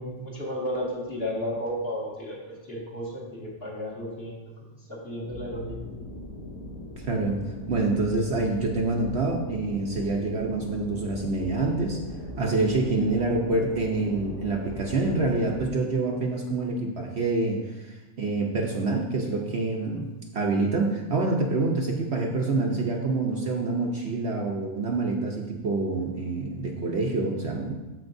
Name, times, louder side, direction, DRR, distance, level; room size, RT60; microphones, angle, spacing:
voice 1, 0.0-4.4 4.9-5.9, equal, 45° left, -6 dB, 2.3 m, -33 dB
sound 1, 5.2-15.7, left 1 dB, 90° left, 2.6 m, -39 dB
voice 2, 7.1-7.4 7.7-12.0 12.4-20.1 20.3-27.7, right 3 dB, 55° right, 0 dB, 0.9 m, -26 dB
14.0 x 5.0 x 2.6 m, 1.1 s
omnidirectional pair, 1.5 m